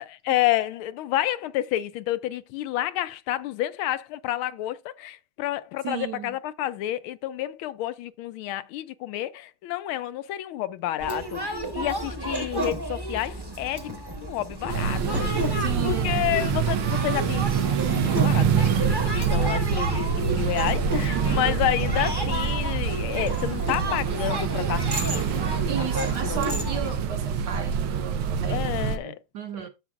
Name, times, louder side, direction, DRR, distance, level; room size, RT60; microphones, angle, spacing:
voice 1, 0.0-25.4 25.8-26.6 28.4-29.2, left 13 dB, 80° left, 1.4 m, -30 dB
voice 2, 5.8-6.3 15.5-16.3 21.1-21.6 25.6-28.7 29.0-29.7, right 9 dB, 60° right, 1.5 m, -34 dB
sound 1, 11.0-27.0, right 1 dB, 15° right, 0.9 m, -32 dB
sound 2, 14.7-29.0, right 7 dB, 75° right, 1.6 m, -26 dB
9.8 x 7.3 x 2.5 m
omnidirectional pair, 2.3 m